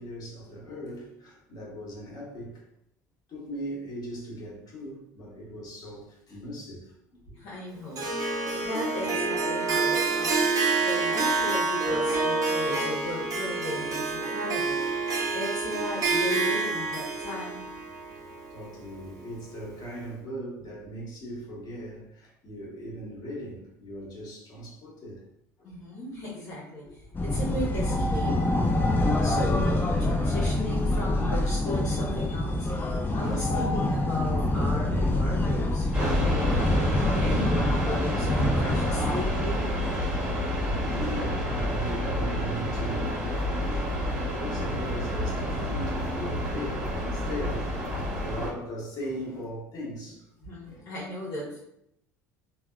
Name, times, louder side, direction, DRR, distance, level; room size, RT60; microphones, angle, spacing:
voice 1, 0.0-2.6 3.3-7.4 18.5-25.3 25.6-25.7 32.7-33.4 38.4-38.7 39.3-39.7 40.7-44.0 44.3-50.3 50.7-51.0, equal, 45° left, 1.3 m, -39 dB
voice 2, 7.3-10.4 10.8-14.9 15.3-17.6 25.6-28.3 28.7-32.9 33.1-36.8 37.2-39.6 50.4-51.6, left 1 dB, 65° left, 1.0 m, -36 dB
Harp, 7.9-19.2, right 4 dB, 40° right, 0.8 m, -28 dB
sound 1, 27.1-39.5, left 1 dB, 20° left, 0.5 m, -26 dB
sound 2, 35.9-48.5, equal, 10° right, 1.4 m, -29 dB
3.3 x 2.3 x 2.3 m
hypercardioid pair, 70°, 9 cm